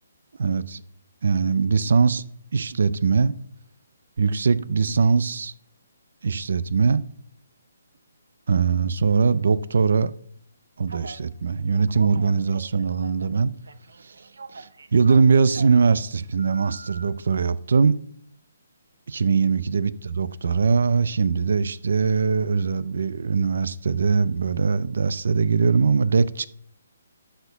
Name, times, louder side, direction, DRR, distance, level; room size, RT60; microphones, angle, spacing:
voice 1, 0.4-0.8 1.2-2.2 2.5-3.4 4.2-5.5 6.2-7.0 8.5-10.1 10.8-13.5 14.0-14.1 14.5-18.0 19.1-26.5, right 5 dB, 65° right, 0.6 m, -21 dB
Telephone, 10.9-11.2 11.7-13.4 13.7-15.8 16.4-17.1, right 4 dB, 90° right, 1.0 m, -42 dB
11.5 x 4.4 x 6.8 m
hypercardioid pair, 165°, 0 cm